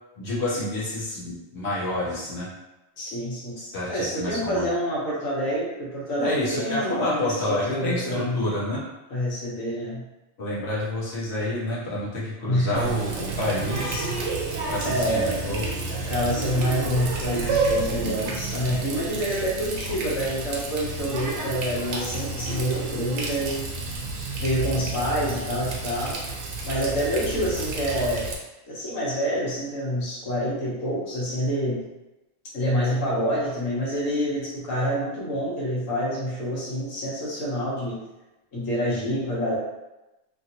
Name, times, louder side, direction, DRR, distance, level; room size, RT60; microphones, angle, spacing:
voice 1, 0.2-2.5 3.6-4.7 6.2-8.8 10.4-14.1 14.7-15.7, left 1 dB, 55° left, -7 dB, 1.1 m, -29 dB
voice 2, 3.0-3.6 3.9-8.4 9.1-10.0 12.4-12.9 14.8-15.5 16.0-23.6 24.4-26.3 26.6-28.3 28.7-31.8 32.5-38.0 38.5-39.6, equal, 80° left, -6 dB, 1.3 m, -27 dB
Water tap faucet, 12.7-28.3, right 3 dB, 65° right, 0.9 m, -30 dB
3.0 x 2.6 x 2.8 m, 1.0 s
omnidirectional pair, 1.4 m